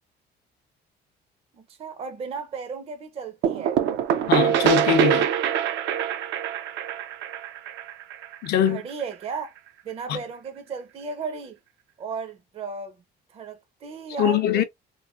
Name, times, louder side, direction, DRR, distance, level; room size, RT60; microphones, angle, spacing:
voice 1, 1.6-3.8 8.7-9.5 9.8-11.6 12.0-13.0 13.3-14.6, right 5 dB, 35° right, 0.5 m, -35 dB
sound 1, 3.4-9.0, right 9 dB, 85° right, 0.5 m, -24 dB
voice 2, 4.3-5.3 8.4-8.8 10.1-10.2 14.2-14.6, left 10 dB, 65° left, 0.6 m, -22 dB
3.0 x 2.5 x 2.4 m
cardioid pair, 125°, 18 cm